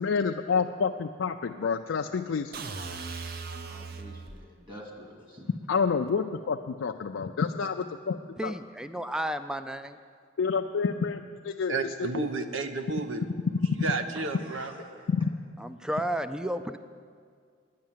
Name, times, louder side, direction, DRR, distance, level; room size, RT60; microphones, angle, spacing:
voice 1, 0.0-2.5 5.7-8.2 8.4-8.5 10.4-12.3 15.1-15.3, left 5 dB, 80° left, 4 dB, 0.4 m, -28 dB
sound 1, 2.5-4.5, right 4 dB, 50° right, 0.7 m, -38 dB
voice 2, 3.6-5.5 14.1-15.1, equal, 25° right, 0 dB, 2.0 m, -47 dB
voice 3, 8.4-10.0 15.6-16.8, right 1 dB, 5° right, 11 dB, 0.4 m, -32 dB
voice 4, 11.7-13.3 13.8-14.7, right 3 dB, 80° right, 7 dB, 0.9 m, -31 dB
10.5 x 9.6 x 7.4 m, 2.1 s
head